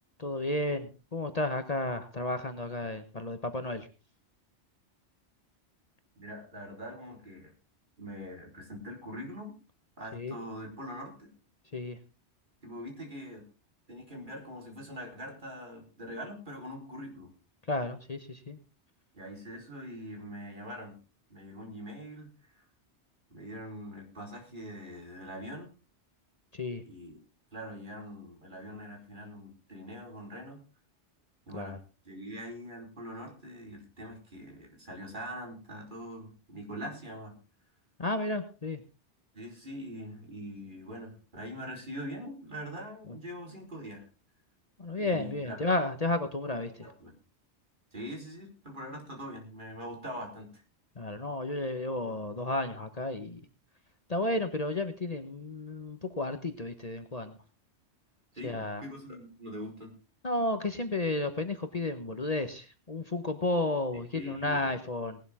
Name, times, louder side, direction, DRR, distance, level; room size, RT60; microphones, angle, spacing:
voice 1, 0.2-3.9 10.1-10.4 11.7-12.0 17.7-18.6 26.5-26.8 31.5-31.8 38.0-38.8 44.8-46.9 51.0-53.4 54.1-57.3 58.4-58.8 60.2-65.2, left 2 dB, 35° left, 8 dB, 1.2 m, -32 dB
voice 2, 6.2-7.5 8.0-9.5 10.0-11.3 12.6-13.4 13.9-17.3 19.1-21.0 21.3-22.6 23.3-25.7 26.9-27.2 27.5-30.6 31.5-31.8 32.0-37.4 39.3-44.1 44.9-45.6 46.6-47.1 47.9-50.5 58.3-59.9 64.1-64.7, equal, 45° right, 1 dB, 4.5 m, -43 dB
18.5 x 12.0 x 3.6 m, 0.32 s
omnidirectional pair, 1.2 m